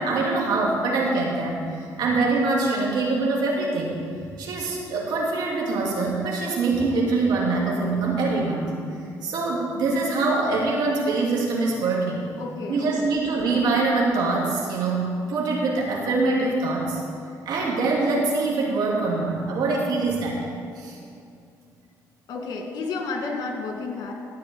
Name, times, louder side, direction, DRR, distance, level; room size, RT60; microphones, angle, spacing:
voice 1, 0.0-4.0 4.4-8.7 9.2-12.3 12.7-17.0 17.5-20.4 20.8-21.0, right 3 dB, 75° right, -3 dB, 2.5 m, -24 dB
voice 2, 12.4-13.2 22.3-24.1, left 3 dB, 70° left, 1 dB, 2.4 m, -31 dB
13.5 x 4.6 x 8.7 m, 2.4 s
cardioid pair, 100°, 7 cm